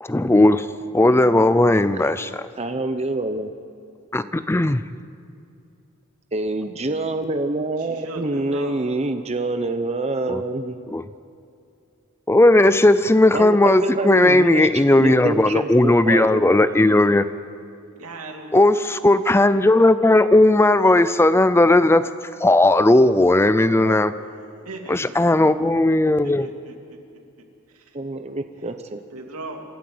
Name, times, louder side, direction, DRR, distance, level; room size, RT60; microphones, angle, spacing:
voice 1, 0.0-0.7 0.9-2.4 4.1-4.8 10.3-10.4 10.9-11.0 12.3-17.3 18.5-22.1 22.4-24.1 24.9-26.5, left 2 dB, 10° left, 13 dB, 0.4 m, -16 dB
voice 2, 2.6-3.5 6.3-10.8 13.3-16.6 23.8-24.0 27.9-29.0, right 2 dB, 30° right, 8 dB, 0.8 m, -26 dB
voice 3, 7.8-8.8 18.0-18.6 24.6-25.3 26.2-26.8 27.7-28.0 28.6-29.6, right 2 dB, 80° right, 3 dB, 2.7 m, -38 dB
27.0 x 13.5 x 7.8 m, 2.5 s
head